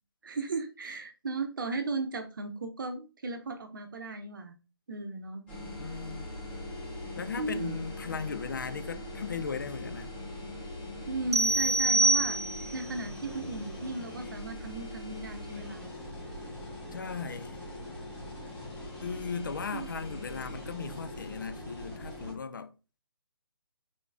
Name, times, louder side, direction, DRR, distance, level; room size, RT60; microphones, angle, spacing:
voice 1, 0.2-4.6 4.9-5.4 7.4-7.7 11.1-12.4 12.7-15.8 19.7-19.9, right 3 dB, 50° right, 0.7 m, -36 dB
sound 1, 5.5-22.3, left 1 dB, 10° left, 1.0 m, -41 dB
voice 2, 5.8-6.3 7.2-10.1 16.9-17.6 19.0-22.7, left 5 dB, 50° left, 0.4 m, -37 dB
sound 2, 11.3-12.9, right 2 dB, 85° right, 0.5 m, -25 dB
3.7 x 3.6 x 2.5 m
figure-of-eight pair, 140°, 14 cm